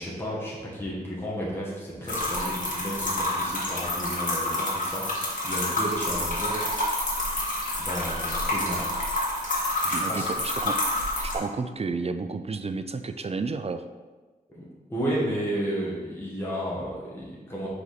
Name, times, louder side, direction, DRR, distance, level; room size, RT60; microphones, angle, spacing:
voice 1, 0.0-7.0 7.8-8.9 9.8-10.3 14.5-17.7, equal, 15° left, -7 dB, 1.6 m, -33 dB
sound 1, 2.1-11.4, left 1 dB, 50° left, 1.9 m, -28 dB
voice 2, 9.9-10.8 11.3-13.8, right 4 dB, 40° right, 9 dB, 0.4 m, -31 dB
5.0 x 4.6 x 4.1 m, 1.3 s
cardioid pair, 65°, 17 cm